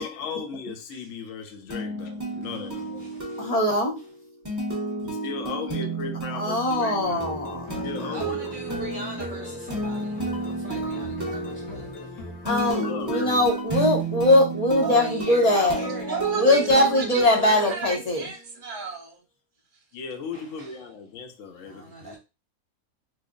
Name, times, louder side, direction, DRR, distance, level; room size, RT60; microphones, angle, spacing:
voice 1, 0.0-3.1 5.0-7.4 7.8-8.5 12.7-13.4 19.9-22.2, left 5 dB, 65° left, 0.8 m, -36 dB
sound 1, 1.7-18.4, right 3 dB, 15° right, 0.7 m, -32 dB
voice 2, 3.4-4.0 6.3-8.2 12.4-15.9 16.3-18.3, left 1 dB, 35° left, 0.6 m, -22 dB
sound 2, 7.0-12.7, left 1 dB, 85° left, 1.4 m, -40 dB
voice 3, 8.1-11.9 13.7-13.8 14.8-16.2 20.3-20.4 21.7-22.2, right 3 dB, 75° right, 0.4 m, -38 dB
voice 4, 16.0-19.2 19.7-19.8 20.6-20.8, right 4 dB, 40° right, 1.0 m, -35 dB
3.1 x 2.0 x 3.6 m
omnidirectional pair, 1.6 m